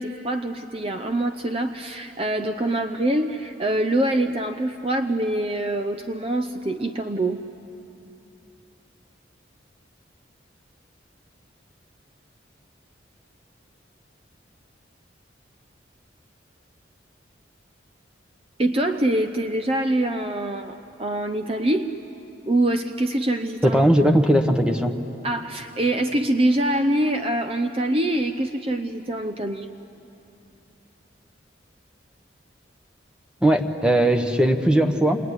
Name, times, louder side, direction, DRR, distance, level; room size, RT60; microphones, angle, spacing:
voice 1, 0.0-7.4 18.6-21.9 22.5-23.8 25.2-29.7, right 1 dB, 30° right, 6 dB, 0.7 m, -24 dB
voice 2, 23.6-24.9 33.4-35.2, right 1 dB, 5° right, 6 dB, 1.2 m, -18 dB
27.5 x 22.0 x 9.7 m, 2.8 s
head